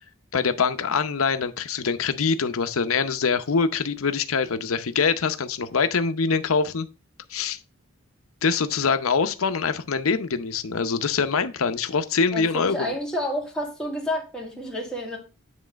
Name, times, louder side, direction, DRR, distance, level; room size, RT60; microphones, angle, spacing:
voice 1, 0.3-6.9 7.3-7.6 8.4-12.9, left 5 dB, 90° left, 0.7 m, -24 dB
voice 2, 12.3-15.2, left 1 dB, 5° left, 1.9 m, -30 dB
9.5 x 3.2 x 5.0 m
head